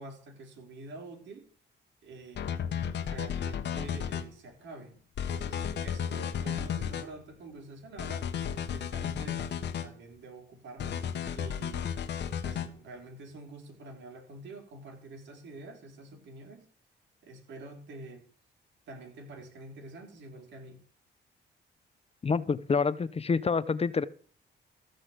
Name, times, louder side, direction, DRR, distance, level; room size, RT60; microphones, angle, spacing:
voice 1, 0.0-1.5 2.0-2.5 3.0-5.0 5.3-8.3 8.7-9.5 9.8-11.0 11.3-12.0 12.4-16.7 17.2-18.3 18.9-20.8, right 2 dB, 85° right, 3.5 m, -47 dB
sound 1, 2.4-4.2 5.2-7.1 8.0-9.9 10.8-12.7, left 8 dB, 70° left, 1.3 m, -33 dB
voice 2, 22.2-24.0, left 5 dB, 35° left, 0.8 m, -27 dB
14.0 x 5.7 x 8.0 m
cardioid pair, 95°, 18 cm